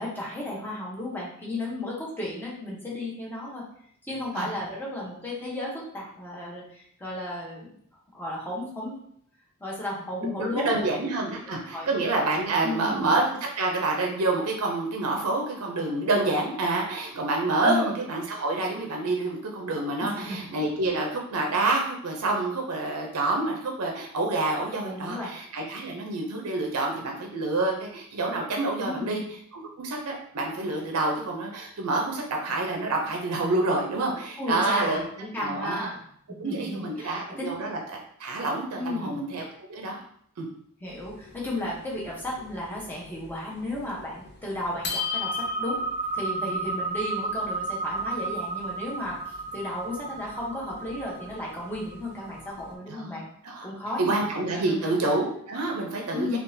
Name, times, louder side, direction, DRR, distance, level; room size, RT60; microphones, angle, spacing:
voice 1, 0.0-3.6 4.0-7.7 8.1-9.0 9.6-10.8 11.5-11.9 12.6-13.1 17.6-18.0 20.0-20.5 24.8-25.3 28.8-29.2 34.4-36.0 36.4-37.6 38.7-39.3 40.8-45.8 46.1-53.3 53.6-54.2 54.5-55.0 56.1-56.4, left 1 dB, 10° left, -5 dB, 0.8 m, -34 dB
voice 2, 10.4-29.2 29.5-35.0 35.4-35.9 36.4-37.8 38.2-40.0 40.4-40.5 52.9-53.7 54.0-56.4, right 2 dB, 80° right, 0 dB, 0.6 m, -28 dB
sound 1, 40.9-42.9 43.2-43.3 43.7-44.3 44.6-52.7, right 1 dB, 50° left, 0.6 m, -33 dB
3.7 x 2.4 x 2.6 m, 0.65 s
head